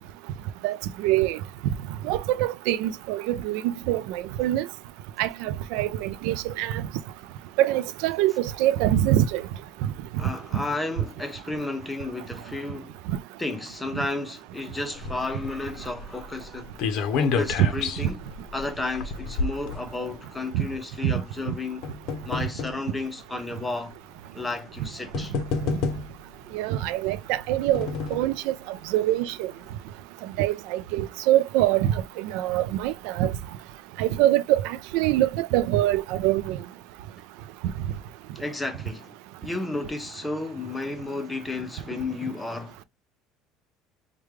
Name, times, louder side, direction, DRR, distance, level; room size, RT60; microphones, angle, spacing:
voice 1, 0.6-1.4 2.0-4.7 5.2-6.8 7.6-9.4 17.6-17.7 20.5-20.7 21.0-21.1 26.5-28.5 28.9-29.5 30.4-33.3 34.0-36.6, right 13 dB, 70° right, 0.3 m, -24 dB
voice 2, 10.2-13.0 13.4-16.8 17.2-18.3 18.5-21.8 22.2-24.0 24.3-25.3 38.3-39.2 39.4-42.8, left 2 dB, 5° left, 0.6 m, -32 dB
sound 1, 15.0-20.4 21.3-22.8 23.6-23.7 24.7-24.8 25.1-26.3 27.3-28.4 28.8-28.9 29.2-29.3, left 5 dB, 50° left, 0.6 m, -30 dB
4.8 x 2.2 x 3.1 m
cardioid pair, 175°, 0 cm